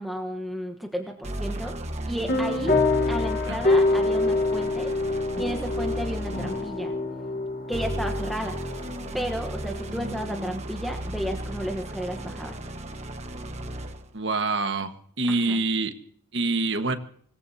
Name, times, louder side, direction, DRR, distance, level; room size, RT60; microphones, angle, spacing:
voice 1, 0.0-1.8 2.1-2.8 3.1-4.9 5.4-7.0 7.7-8.5 9.1-12.6 15.3-15.6, equal, ahead, 3 dB, 1.1 m, -33 dB
sound 1, 1.2-6.8 7.7-14.1, right 1 dB, 35° right, 1.3 m, -35 dB
sound 2, 2.3-10.4, left 2 dB, 45° left, 1.4 m, -26 dB
voice 2, 14.1-15.9 16.3-16.9, right 3 dB, 60° right, 7 dB, 1.5 m, -26 dB
26.0 x 18.5 x 2.8 m, 0.63 s
head